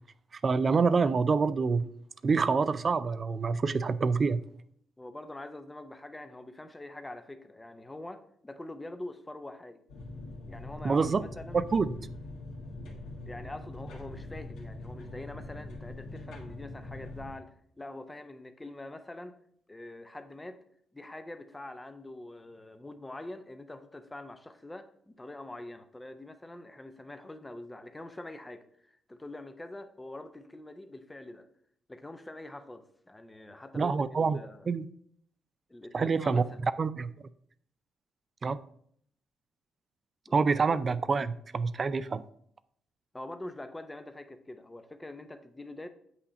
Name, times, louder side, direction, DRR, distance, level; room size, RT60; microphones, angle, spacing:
voice 1, 0.4-1.9 2.2-4.4 10.8-11.2 11.5-11.9 33.7-34.4 34.7-34.9 35.9-36.4 36.8-37.1 38.4-38.6 40.3-42.2, right 4 dB, 40° right, 15 dB, 0.4 m, -26 dB
voice 2, 5.0-9.8 10.5-11.6 13.3-19.4 19.7-20.6 20.9-31.5 31.9-34.7 35.7-36.6 40.3-40.4 43.1-45.9, left 2 dB, 15° left, 9 dB, 0.7 m, -44 dB
sound 1, 9.9-17.3, left 2 dB, 85° left, 1.5 m, -43 dB
8.2 x 2.8 x 4.9 m, 0.66 s
cardioid pair, 90°, 0 cm